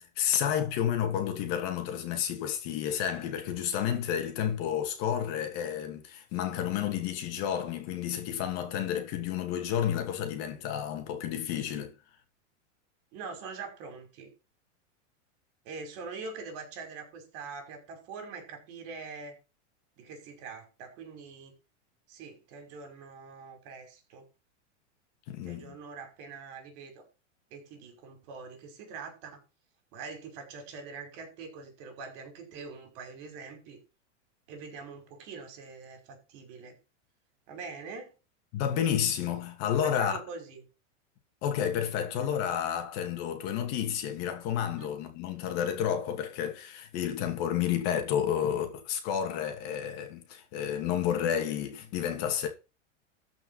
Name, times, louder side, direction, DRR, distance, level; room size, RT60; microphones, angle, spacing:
voice 1, 0.0-11.9 25.3-25.7 38.5-40.2 41.4-52.5, left 9 dB, 40° left, 2.8 m, -31 dB
voice 2, 13.1-14.3 15.6-19.3 20.0-21.5 22.1-24.3 25.4-27.0 27.5-29.4 29.9-33.8 34.5-36.8 37.5-38.1 39.8-40.6 44.8-44.9, right 4 dB, 45° right, 5.7 m, -43 dB
13.5 x 5.8 x 5.8 m
supercardioid pair, 150°, 37 cm